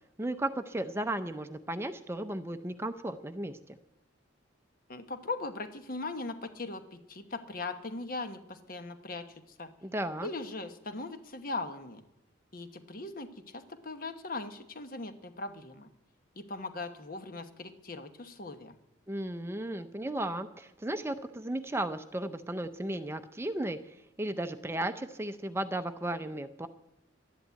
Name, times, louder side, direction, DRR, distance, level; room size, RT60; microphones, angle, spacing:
voice 1, 0.2-3.8 9.8-10.3 19.1-26.7, right 1 dB, 15° right, 9 dB, 0.6 m, -35 dB
voice 2, 4.9-9.7 10.2-12.0 12.5-15.9 16.3-18.8, left 3 dB, 50° left, 8 dB, 1.1 m, -39 dB
12.0 x 11.0 x 8.2 m, 0.93 s
head